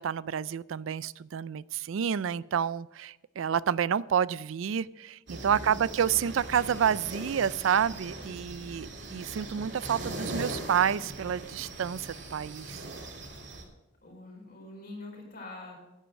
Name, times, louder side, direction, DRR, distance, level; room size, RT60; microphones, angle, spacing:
voice 1, 0.0-12.9, right 8 dB, 85° right, 20 dB, 0.4 m, -29 dB
voice 2, 5.3-5.8 14.0-15.7, left 2 dB, 50° left, -1 dB, 4.8 m, -45 dB
sound 1, 5.3-13.6, right 2 dB, 60° right, 3.0 m, -40 dB
10.0 x 10.0 x 6.2 m, 1.0 s
head